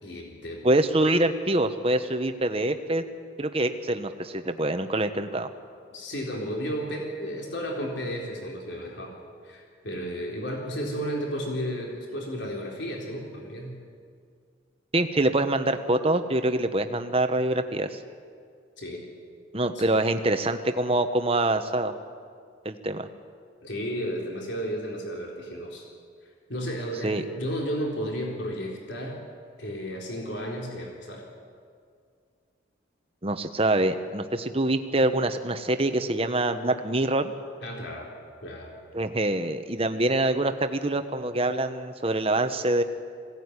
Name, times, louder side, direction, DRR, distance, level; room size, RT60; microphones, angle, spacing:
voice 1, 0.0-0.6 5.9-9.1 9.4-13.8 18.8-19.0 19.8-19.9 23.6-25.9 26.5-29.2 29.6-31.3 37.6-38.1 38.4-38.7, equal, 65° left, -1 dB, 3.9 m, -33 dB
voice 2, 0.6-3.0 3.4-5.5 14.9-18.0 19.5-21.9 22.6-23.1 27.0-27.2 33.2-37.3 38.9-42.8, right 1 dB, 30° right, 8 dB, 1.1 m, -25 dB
21.5 x 17.5 x 9.8 m, 2.1 s
head